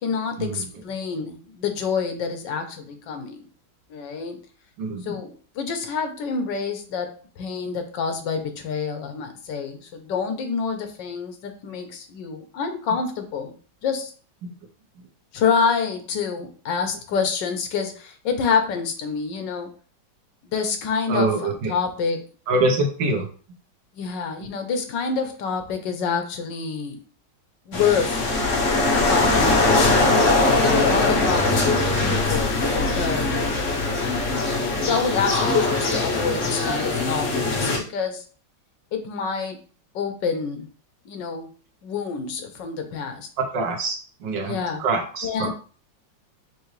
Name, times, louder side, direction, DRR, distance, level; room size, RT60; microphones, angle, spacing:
voice 1, 0.0-3.5 3.9-4.4 5.0-13.5 13.8-14.1 15.3-19.7 20.4-22.2 23.9-27.0 27.7-28.2 29.1-31.6 32.0-33.3 34.8-38.3 38.9-39.6 39.9-40.7 41.0-41.5 41.8-43.3 44.4-44.8 45.2-45.5, left 5 dB, 80° left, 6 dB, 1.4 m, -27 dB
voice 2, 4.8-5.2 14.4-14.5 21.1-21.8 22.5-23.3 24.4-24.5 27.7-27.8 43.5-45.5, right 2 dB, 80° right, 2 dB, 1.7 m, -25 dB
sound 1, 27.7-37.8, left 2 dB, 50° left, 1.2 m, -21 dB
6.0 x 2.7 x 3.2 m, 0.40 s
omnidirectional pair, 2.0 m